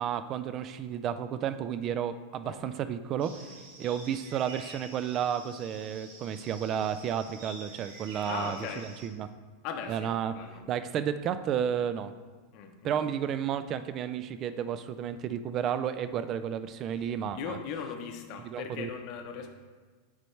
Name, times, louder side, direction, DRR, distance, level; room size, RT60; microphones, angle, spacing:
voice 1, 0.0-3.5 3.8-9.3 9.9-10.3 10.7-12.1 12.8-17.6 18.4-18.9, right 9 dB, 30° right, 12 dB, 0.3 m, -32 dB
sound 1, 3.2-9.1, right 2 dB, 80° right, 1.6 m, -48 dB
voice 2, 8.3-8.9 9.6-10.6 12.5-13.1 17.3-19.5, left 6 dB, 45° left, 5 dB, 0.8 m, -39 dB
9.3 x 4.3 x 3.2 m, 1.4 s
supercardioid pair, 155°, 0 cm